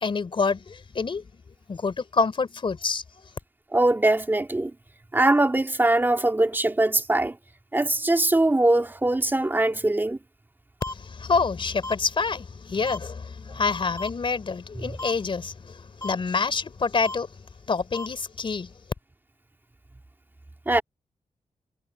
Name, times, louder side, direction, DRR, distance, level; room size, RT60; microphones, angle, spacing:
voice 1, 0.0-1.2 1.7-3.0 10.9-17.3 17.7-18.7, left 4 dB, 45° left, 3.6 m, -27 dB
voice 2, 3.7-4.7 5.1-7.4 7.7-10.2 20.7-20.8, right 2 dB, 15° right, 2.8 m, -22 dB
sound 1, 10.8-10.9 11.8-11.9 12.8-13.0 14.0-14.1 15.0-15.1 16.0-16.1 17.0-17.2 17.9-18.1, left 2 dB, 25° left, 3.8 m, -34 dB
wide cardioid pair, 135°, 12 cm